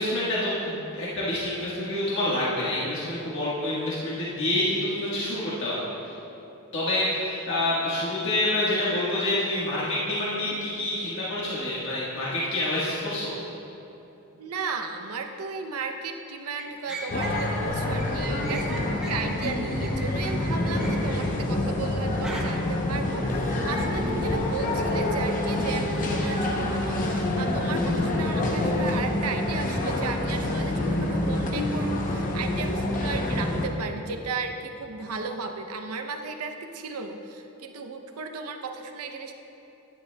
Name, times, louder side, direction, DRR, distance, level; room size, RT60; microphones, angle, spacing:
voice 1, 0.0-6.1 6.7-13.3, left 1 dB, 55° left, -8 dB, 1.4 m, -27 dB
voice 2, 14.4-39.3, right 4 dB, 85° right, 5 dB, 0.6 m, -35 dB
sound 1, 16.6-17.5 17.9-21.3 22.2-22.4, right 1 dB, 5° right, 0.8 m, -38 dB
sound 2, 17.1-33.7, left 1 dB, 35° left, 0.7 m, -27 dB
11.0 x 10.0 x 2.2 m, 3.0 s
head